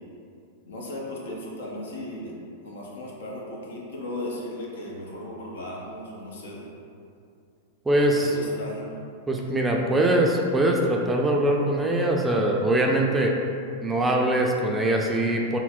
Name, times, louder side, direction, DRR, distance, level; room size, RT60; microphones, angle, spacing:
voice 1, 0.6-6.7 7.9-9.0, left 1 dB, 75° left, -3 dB, 0.6 m, -36 dB
voice 2, 7.9-8.3 9.3-13.3 13.8-15.6, right 1 dB, 10° right, 0 dB, 0.3 m, -22 dB
4.0 x 2.0 x 2.3 m, 2.5 s
hypercardioid pair, 110°, 0 cm